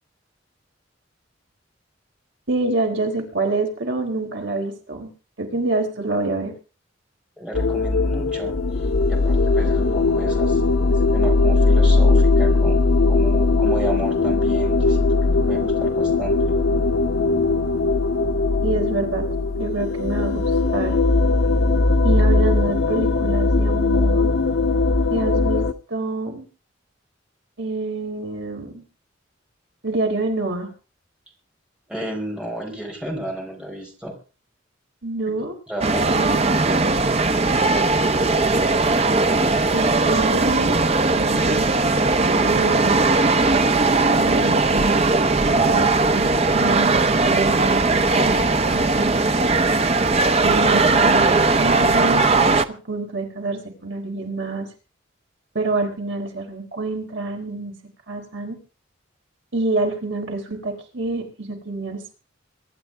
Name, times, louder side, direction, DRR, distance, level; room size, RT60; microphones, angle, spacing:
voice 1, 2.5-5.1 5.4-6.5 18.6-19.3 19.5-21.0 22.0-24.3 25.1-26.4 27.6-28.8 29.8-30.7 35.0-35.6 35.8-37.0 39.7-40.8 41.1-41.9 42.2-43.1 44.2-49.2 50.4-54.7 55.5-57.7 58.1-58.6 59.5-62.1, right 2 dB, 65° right, 2 dB, 4.0 m, -27 dB
voice 2, 7.4-10.6 10.9-15.1 15.3-16.4 31.9-34.1 35.7-36.1, right 1 dB, 5° right, 0 dB, 4.9 m, -33 dB
sound 1, 7.5-25.7, left 3 dB, 80° left, 1.1 m, -19 dB
sound 2, 35.8-52.7, right 3 dB, 30° right, 0.9 m, -19 dB
24.5 x 11.5 x 3.5 m, 0.34 s
head